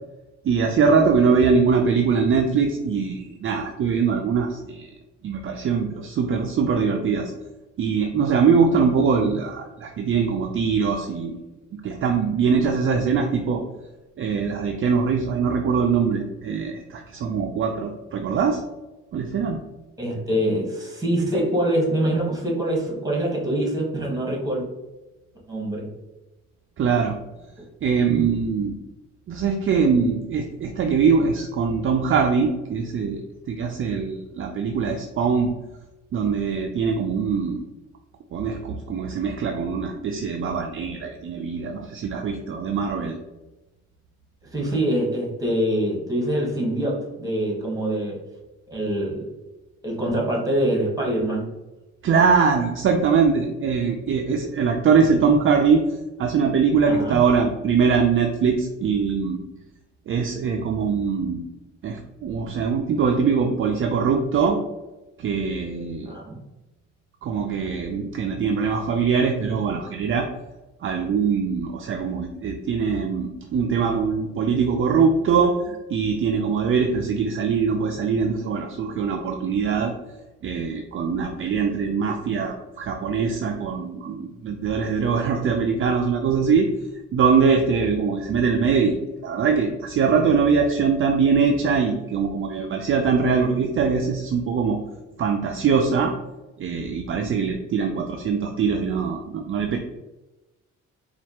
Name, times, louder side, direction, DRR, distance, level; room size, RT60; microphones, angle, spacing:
voice 1, 0.4-4.9 5.2-7.3 7.8-11.4 11.8-13.6 14.2-18.6 19.1-19.6 26.8-27.2 27.8-28.8 29.3-33.2 33.5-35.5 36.1-37.6 38.3-43.2 52.0-55.8 56.2-59.4 60.1-61.4 61.8-64.6 65.2-66.1 67.2-70.3 70.8-79.9 80.4-86.7 87.1-89.0 89.2-94.8 95.2-96.1 96.6-99.8, right 5 dB, 45° right, 3 dB, 0.4 m, -22 dB
voice 2, 20.0-24.6 25.5-25.9 44.5-48.2 48.7-49.2 49.8-51.5 56.9-57.2 66.0-66.4, right 1 dB, 10° right, -2 dB, 1.5 m, -24 dB
4.2 x 2.4 x 2.9 m, 1.1 s
cardioid pair, 90°, 30 cm